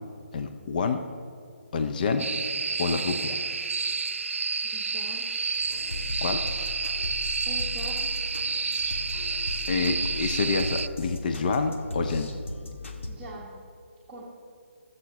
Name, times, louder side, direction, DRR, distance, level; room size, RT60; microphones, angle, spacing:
voice 1, 0.3-1.0 1.7-2.3 2.8-3.4 6.2-6.8 9.7-12.3, left 4 dB, 40° left, 6 dB, 0.7 m, -28 dB
sound 1, 2.2-10.9, right 4 dB, 85° right, 0.3 m, -30 dB
voice 2, 4.6-5.3 7.4-8.1 13.1-13.5 14.1-14.3, right 1 dB, 20° right, -6 dB, 1.3 m, -42 dB
sound 2, 5.5-13.1, left 2 dB, 85° left, 1.6 m, -36 dB
22.0 x 7.7 x 3.0 m, 2.2 s
hypercardioid pair, 160°, 7 cm